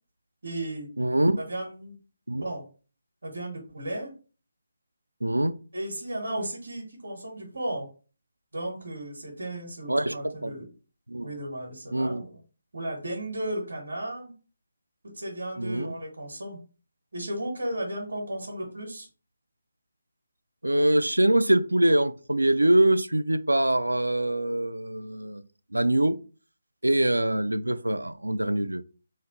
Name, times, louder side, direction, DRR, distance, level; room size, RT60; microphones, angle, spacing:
voice 1, 0.4-0.9 1.5-2.0 2.4-2.6 3.2-4.1 5.7-7.9 8.5-10.7 11.2-12.4 12.7-14.3 15.1-16.6 17.1-19.1, right 1 dB, 70° right, 1.2 m, -34 dB
voice 2, 1.0-1.4 2.3-2.4 5.2-5.5 9.9-10.5 11.1-11.3 11.9-12.2 15.6-15.9 20.6-25.4 25.7-26.2 26.8-28.8, right 1 dB, 85° right, 0.3 m, -24 dB
3.1 x 2.4 x 3.8 m
figure-of-eight pair, 150°, 0 cm